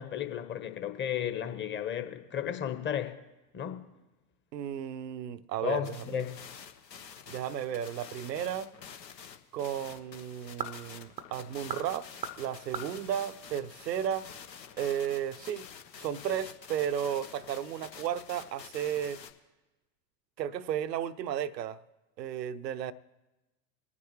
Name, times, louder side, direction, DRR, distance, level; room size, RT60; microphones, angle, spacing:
voice 1, 0.0-3.2 3.5-3.8 5.6-6.4, left 9 dB, 20° left, 1.1 m, -34 dB
voice 2, 4.5-6.3 7.3-8.7 9.5-12.1 12.4-14.3 14.8-15.7 16.0-19.2 20.4-21.8 22.2-22.9, right 9 dB, 75° right, 0.7 m, -34 dB
sound 1, 5.8-19.3, left 7 dB, 80° left, 1.1 m, -48 dB
sound 2, 8.5-14.3, right 6 dB, 15° right, 0.6 m, -44 dB
23.5 x 9.6 x 3.1 m
figure-of-eight pair, 85°, 50 cm